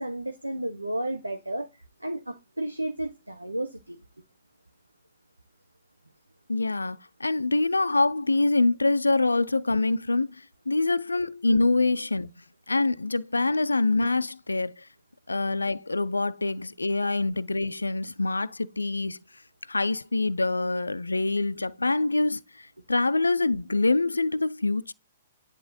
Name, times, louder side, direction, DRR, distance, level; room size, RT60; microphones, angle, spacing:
voice 1, 0.0-1.7 2.0-4.0, right 1 dB, 90° right, 0.7 m, -32 dB
voice 2, 6.5-14.9 15.3-19.2 19.7-24.9, left 2 dB, 80° left, 0.3 m, -25 dB
10.5 x 3.5 x 2.6 m
figure-of-eight pair, 115°, 0 cm